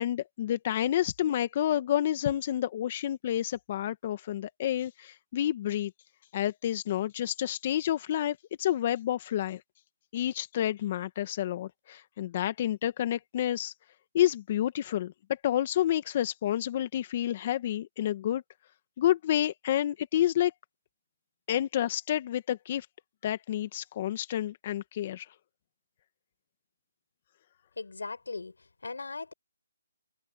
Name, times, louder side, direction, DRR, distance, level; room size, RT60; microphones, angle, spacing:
voice 1, 0.0-5.9 6.3-9.6 10.1-13.7 14.1-18.4 19.0-20.5 21.5-22.9 23.2-25.3, left 11 dB, 35° left, 1.3 m, -29 dB
voice 2, 27.8-28.5 28.8-29.3, left 3 dB, 85° left, 4.6 m, -38 dB
open air
hypercardioid pair, 160°, 0 cm